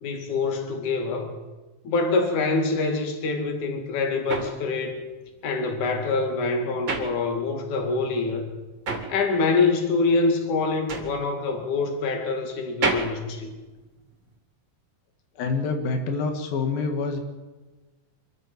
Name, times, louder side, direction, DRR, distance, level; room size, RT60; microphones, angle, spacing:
voice 1, 0.0-1.3 1.8-5.0 5.4-8.5 9.1-13.5, left 3 dB, 60° left, 4 dB, 3.8 m, -25 dB
sound 1, 3.5-7.8 8.1-14.3, right 4 dB, 35° right, 2.9 m, -33 dB
voice 2, 15.4-17.2, left 4 dB, 90° left, 5 dB, 3.7 m, -26 dB
25.5 x 14.0 x 7.5 m, 1.2 s
omnidirectional pair, 4.0 m